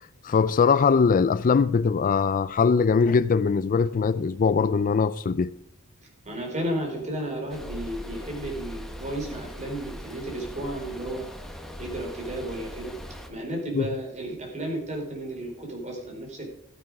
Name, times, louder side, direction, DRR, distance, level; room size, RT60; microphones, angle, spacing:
voice 1, 0.2-5.5 13.7-13.9, left 5 dB, 40° left, 0.4 m, -21 dB
voice 2, 6.2-11.3 11.8-13.0 13.3-16.5, right 1 dB, 35° right, 4.3 m, -33 dB
sound 1, 7.5-13.3, equal, ahead, 1.2 m, -40 dB
15.0 x 9.1 x 4.8 m
head